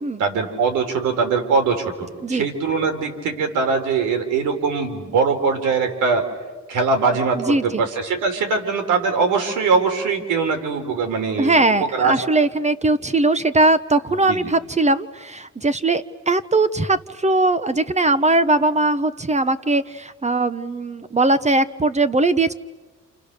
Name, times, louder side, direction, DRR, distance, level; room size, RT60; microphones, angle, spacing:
voice 1, 0.2-6.2 6.7-12.1 14.3-14.5, right 4 dB, 90° right, 6 dB, 4.1 m, -22 dB
voice 2, 7.4-7.9 11.4-22.5, right 2 dB, 20° right, 13 dB, 1.0 m, -20 dB
29.5 x 29.0 x 6.7 m, 1.2 s
cardioid pair, 90°, 30 cm